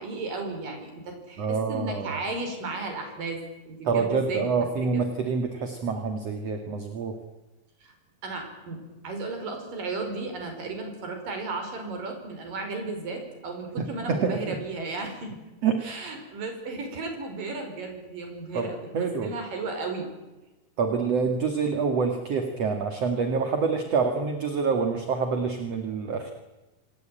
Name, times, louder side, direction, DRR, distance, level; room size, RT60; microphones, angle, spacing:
voice 1, 0.0-3.4 3.7-4.5 4.8-5.1 7.8-7.9 8.2-15.3 15.8-20.1, right 3 dB, 85° right, 4 dB, 6.9 m, -34 dB
voice 2, 1.4-2.1 3.8-7.2 13.8-14.6 15.6-15.8 18.5-19.3 20.8-26.3, right 5 dB, 50° right, 6 dB, 3.0 m, -27 dB
28.0 x 19.0 x 9.1 m, 1.1 s
omnidirectional pair, 3.8 m